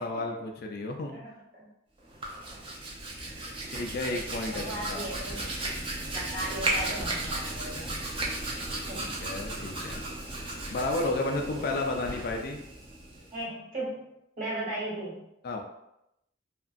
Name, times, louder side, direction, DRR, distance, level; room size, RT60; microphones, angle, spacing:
voice 1, 0.0-1.2 3.7-5.0 9.0-10.0 10.7-12.6 15.4-15.6, left 2 dB, 50° left, 3 dB, 0.3 m, -32 dB
voice 2, 1.1-1.7 3.6-3.7 4.5-5.4 6.1-7.9 8.9-9.1 11.3-11.5 13.3-15.2, right 1 dB, 45° right, -6 dB, 1.2 m, -37 dB
Hands, 2.0-13.4, right 2 dB, 25° right, 0.4 m, -35 dB
2.9 x 2.5 x 2.5 m, 0.84 s
head